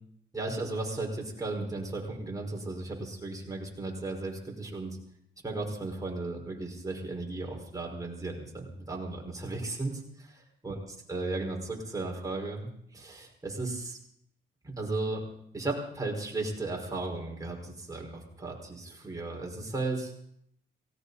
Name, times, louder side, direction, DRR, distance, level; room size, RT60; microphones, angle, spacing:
voice 1, 0.3-5.0 5.4-14.0 14.6-15.2 15.5-20.1, right 2 dB, 15° right, 0 dB, 5.3 m, -35 dB
18.0 x 17.5 x 4.2 m, 0.72 s
cardioid pair, 90°, 20 cm